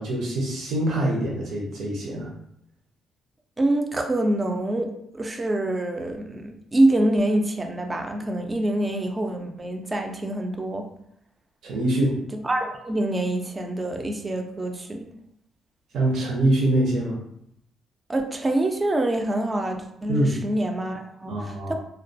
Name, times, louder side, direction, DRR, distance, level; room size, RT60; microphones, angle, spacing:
voice 1, 0.0-2.3 11.6-12.2 15.9-17.2 20.1-20.3 21.3-21.7, right 1 dB, 70° right, -2 dB, 0.6 m, -24 dB
voice 2, 3.6-10.9 12.3-15.1 18.1-21.7, right 1 dB, 20° right, 4 dB, 0.3 m, -25 dB
2.3 x 2.1 x 2.6 m, 0.72 s
cardioid pair, 90°, 0 cm